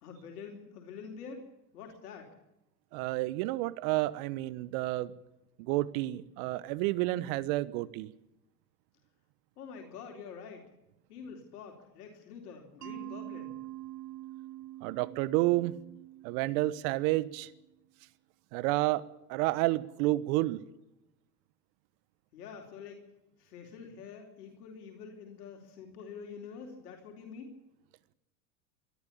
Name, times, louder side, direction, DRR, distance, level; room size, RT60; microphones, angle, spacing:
voice 1, 0.0-2.3 9.6-10.7 11.1-13.6 22.3-23.0 23.4-27.6, left 6 dB, 75° left, 2 dB, 3.9 m, -46 dB
voice 2, 2.9-5.1 5.6-8.1 14.8-15.8 16.2-17.5 18.5-19.0 19.3-20.6, right 18 dB, 60° right, 17 dB, 1.3 m, -30 dB
Mallet percussion, 12.8-17.6, right 15 dB, 80° right, 1.3 m, -46 dB
24.0 x 13.0 x 8.6 m, 0.89 s
hypercardioid pair, 85°, 46 cm